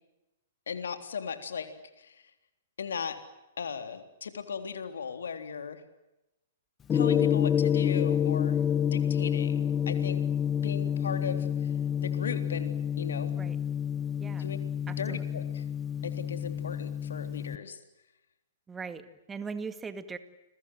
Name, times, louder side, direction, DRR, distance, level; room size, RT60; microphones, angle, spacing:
voice 1, 0.7-1.7 2.0-2.2 2.8-3.2 3.6-5.8 6.9-8.6 8.9-10.2 10.6-11.7 12.0-12.7 13.0-13.4 14.4-14.6 15.0-15.6 16.0-17.8, left 6 dB, 70° left, 8 dB, 3.6 m, -37 dB
Gong, 6.9-17.6, left 9 dB, 20° left, 1.0 m, -28 dB
voice 2, 14.9-15.4 18.7-20.2, right 5 dB, 15° right, 11 dB, 2.1 m, -40 dB
30.0 x 22.5 x 7.9 m, 0.94 s
figure-of-eight pair, 115°, 0 cm